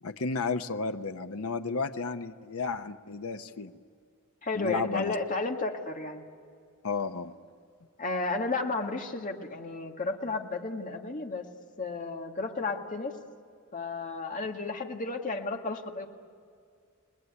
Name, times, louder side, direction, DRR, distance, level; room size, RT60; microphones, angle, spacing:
voice 1, 0.0-3.8 4.5-5.1 6.8-7.3, left 4 dB, 90° left, 8 dB, 0.9 m, -33 dB
voice 2, 4.4-6.2 8.0-11.5 11.8-13.2 13.7-16.1, left 3 dB, 40° left, 3 dB, 1.9 m, -33 dB
29.5 x 20.0 x 9.8 m, 2.3 s
head